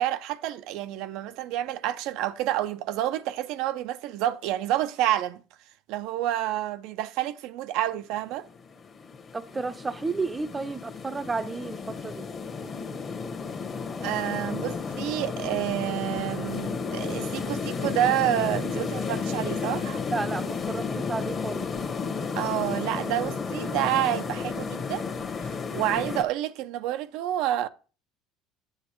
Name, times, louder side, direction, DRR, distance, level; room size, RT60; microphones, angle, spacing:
voice 1, 0.0-5.4 5.9-8.5 14.0-20.0 22.3-25.0 25.4-27.7, right 13 dB, 70° right, 0.5 m, -29 dB
sound 1, 8.5-26.2, left 5 dB, 30° left, 1.2 m, -32 dB
voice 2, 9.3-12.3 20.1-21.7, right 3 dB, 15° right, 0.6 m, -32 dB
9.4 x 8.0 x 3.0 m
cardioid pair, 120°, 0 cm